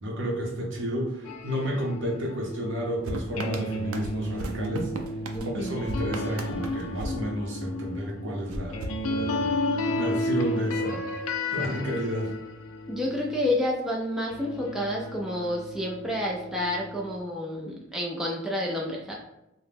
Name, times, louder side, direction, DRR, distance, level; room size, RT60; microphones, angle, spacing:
voice 1, 0.0-4.9 5.5-9.6 9.9-11.0 11.5-12.3, equal, 60° right, -1 dB, 0.8 m, -31 dB
sound 1, 1.3-13.8 14.3-17.2, left 1 dB, 75° left, 0.4 m, -33 dB
sound 2, 3.0-7.9 8.5-9.7, right 2 dB, 90° right, 0.4 m, -38 dB
voice 2, 5.3-5.7 12.9-19.1, left 1 dB, 5° right, -3 dB, 0.3 m, -29 dB
2.8 x 2.1 x 3.3 m, 0.89 s
head